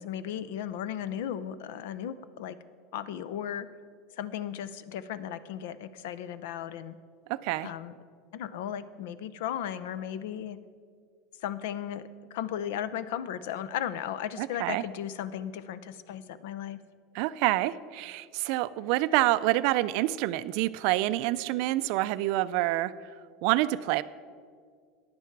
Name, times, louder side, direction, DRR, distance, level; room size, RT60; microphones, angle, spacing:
voice 1, 0.0-2.6 2.9-3.7 4.2-7.0 7.6-7.9 8.3-10.6 11.4-16.8, left 10 dB, 75° left, 15 dB, 0.6 m, -36 dB
voice 2, 7.3-7.7 14.4-14.8 17.1-22.9 23.4-24.0, right 16 dB, 55° right, 15 dB, 0.4 m, -27 dB
15.0 x 10.5 x 4.6 m, 2.1 s
supercardioid pair, 165°, 0 cm